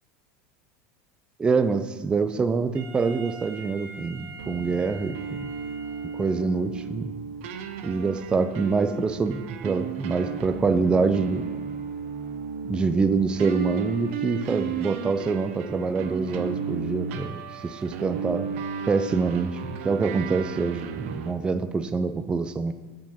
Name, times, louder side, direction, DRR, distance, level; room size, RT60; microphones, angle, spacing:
voice 1, 1.4-5.5 6.1-7.1 7.8-11.5 12.6-18.5 18.9-22.7, right 4 dB, 15° right, 10 dB, 0.4 m, -25 dB
Wind instrument woodwind instrument, 2.7-6.7, right 2 dB, 55° right, 2.6 m, -44 dB
sound 1, 4.4-21.3, right 6 dB, 75° right, 0.8 m, -34 dB
7.5 x 7.3 x 5.6 m, 1.4 s
supercardioid pair, 150°, 7 cm